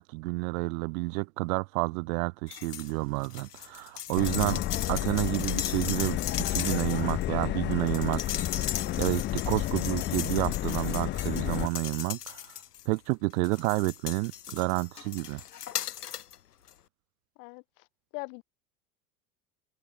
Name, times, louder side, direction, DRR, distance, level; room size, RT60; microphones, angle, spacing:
voice 1, 0.0-4.6 4.9-6.2 6.5-8.7 9.0-12.4 12.9-15.4, right 26 dB, 65° right, 0.8 m, -30 dB
sound 1, 2.5-2.9 3.2-13.0 13.4-16.4 16.7-16.8, left 10 dB, 90° left, 2.0 m, -38 dB
Subway metro underground, 4.2-11.7, left 14 dB, 25° left, 0.4 m, -31 dB
voice 2, 17.4-17.9 18.1-18.4, left 36 dB, 65° left, 2.5 m, -41 dB
open air
hypercardioid pair, 85°, 45 cm